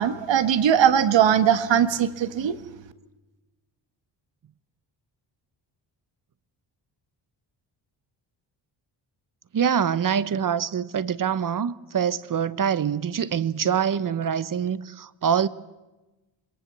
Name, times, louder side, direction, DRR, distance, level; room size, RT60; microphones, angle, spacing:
voice 1, 0.0-2.6, right 9 dB, 70° right, 1.6 m, -20 dB
voice 2, 9.5-15.5, right 8 dB, 45° right, 1.1 m, -25 dB
26.0 x 21.5 x 7.5 m
cardioid pair, 75°, 46 cm